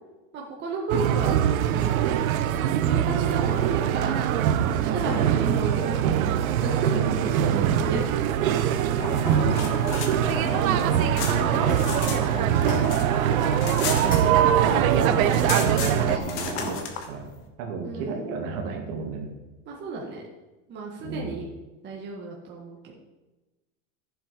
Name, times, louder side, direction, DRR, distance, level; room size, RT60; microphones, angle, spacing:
voice 1, 0.3-1.4 1.7-2.1 2.6-4.3 4.6-6.0 6.6-7.1 7.8-8.0 8.9-9.3 14.6-15.4 15.7-16.0 17.8-18.2 19.7-20.2 20.7-21.5 21.8-22.9, right 3 dB, 25° right, -2 dB, 1.6 m, -33 dB
sound 1, 0.9-16.2, right 10 dB, 85° right, 1.0 m, -23 dB
voice 2, 4.8-5.4 6.7-8.1 9.1-9.5 10.4-11.8 12.1-13.6 13.9-14.2 14.6-15.3 15.9-16.8 17.1-17.3 17.6-19.3 21.0-21.4, right 5 dB, 60° right, 1 dB, 2.6 m, -33 dB
sound 2, 9.0-16.7, left 1 dB, 20° left, 3.0 m, -33 dB
sound 3, 9.3-12.2 12.5-14.7 14.9-15.0 15.3-17.1, left 7 dB, 55° left, 1.7 m, -35 dB
11.0 x 7.5 x 5.2 m, 1.1 s
supercardioid pair, 155°, 41 cm